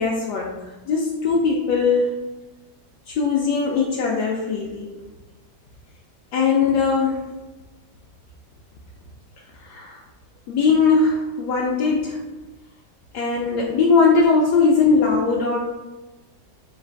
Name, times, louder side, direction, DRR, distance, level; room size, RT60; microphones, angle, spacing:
voice 1, 0.0-2.2 3.1-4.9 6.3-7.2 9.6-10.0 10.5-12.2 13.1-15.6, left 4 dB, 75° left, -3 dB, 1.1 m, -20 dB
3.9 x 2.4 x 4.4 m, 1.1 s
omnidirectional pair, 1.8 m